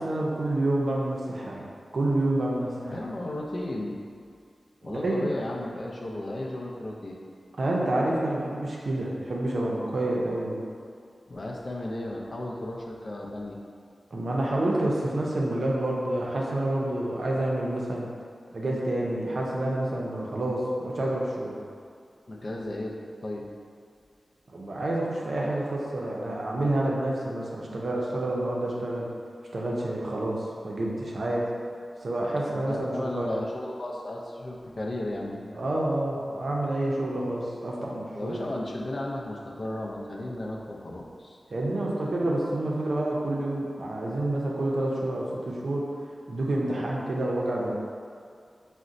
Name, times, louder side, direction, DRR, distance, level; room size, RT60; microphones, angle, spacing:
voice 1, 0.0-3.1 4.8-5.3 7.6-10.6 14.1-18.1 18.5-21.6 24.5-29.1 29.5-31.5 32.0-33.3 35.6-38.5 41.5-45.9 46.3-47.7, right 1 dB, 65° right, -3 dB, 0.5 m, -28 dB
voice 2, 2.9-4.0 4.8-7.2 11.3-13.6 22.3-22.9 23.2-23.5 32.5-35.6 38.1-41.4, left 1 dB, 60° left, -2 dB, 0.4 m, -34 dB
3.9 x 2.1 x 2.5 m, 2.2 s
wide cardioid pair, 60°, 0 cm